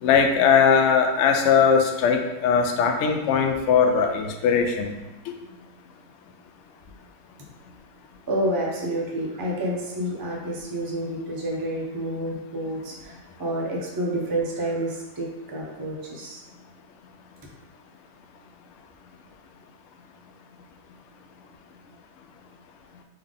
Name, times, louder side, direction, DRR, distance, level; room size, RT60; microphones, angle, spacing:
voice 1, 0.0-4.9, left 6 dB, 70° left, 4 dB, 0.7 m, -20 dB
voice 2, 8.3-13.1 13.4-16.4, right 1 dB, 30° right, -3 dB, 0.4 m, -29 dB
3.5 x 3.3 x 3.6 m, 1.0 s
omnidirectional pair, 1.6 m